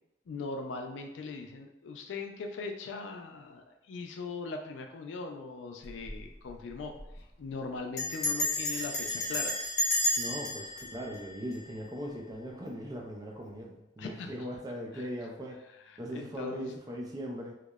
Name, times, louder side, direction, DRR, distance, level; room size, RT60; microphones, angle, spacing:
voice 1, 0.3-7.0 7.4-9.6 14.0-14.3 14.9-15.0 15.9-16.7, left 4 dB, 85° left, 4 dB, 0.3 m, -40 dB
Bell, 5.8-6.2 6.5-6.6 6.8-7.2 8.0-12.1, left 1 dB, 40° left, 0.7 m, -32 dB
voice 2, 10.2-15.6 16.0-17.5, equal, 20° right, -1 dB, 0.4 m, -39 dB
2.9 x 2.0 x 2.2 m, 0.89 s
head